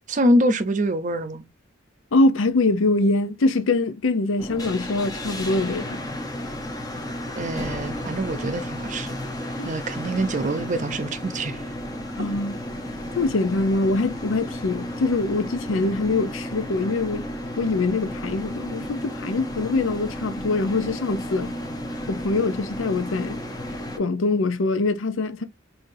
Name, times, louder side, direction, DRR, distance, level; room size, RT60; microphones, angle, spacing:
voice 1, 0.1-1.4 7.4-9.2 9.6-11.6, right 1 dB, 40° right, 0.6 m, -24 dB
voice 2, 2.1-6.0 9.6-9.7 12.2-12.6 13.2-17.2 17.6-21.5 22.1-23.4 24.0-25.4, left 2 dB, 80° left, 0.6 m, -23 dB
sound 1, 4.4-24.0, equal, 20° left, 0.8 m, -33 dB
5.6 x 2.7 x 2.6 m
head